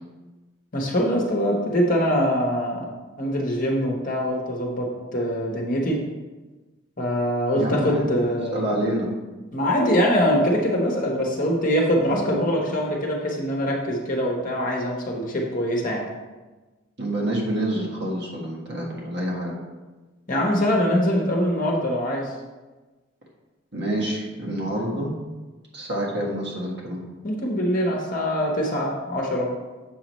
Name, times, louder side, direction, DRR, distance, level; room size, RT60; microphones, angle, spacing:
voice 1, 0.7-2.9 3.2-6.0 7.0-8.7 9.5-16.0 20.3-22.3 27.2-29.5, equal, 40° left, -1 dB, 1.0 m, -23 dB
voice 2, 7.5-9.1 12.1-12.5 17.0-19.6 23.7-25.1 25.7-27.0, right 1 dB, 50° right, -3 dB, 1.5 m, -27 dB
7.2 x 5.7 x 3.1 m, 1.2 s
head